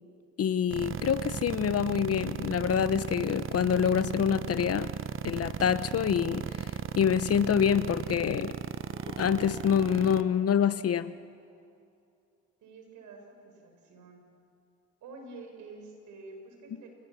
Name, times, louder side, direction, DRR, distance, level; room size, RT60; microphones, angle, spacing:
voice 1, 0.4-4.9 5.2-6.5 7.0-8.6 9.1-11.1, left 8 dB, 50° left, 14 dB, 0.9 m, -26 dB
sound 1, 0.7-10.2, right 8 dB, 45° right, 0.9 m, -34 dB
sound 2, 8.7-11.7, right 1 dB, 15° right, 5.0 m, -53 dB
voice 2, 12.6-14.2 15.0-16.9, right 3 dB, 80° right, 3 dB, 5.9 m, -48 dB
28.5 x 20.5 x 7.3 m, 2.4 s
cardioid pair, 90°, 30 cm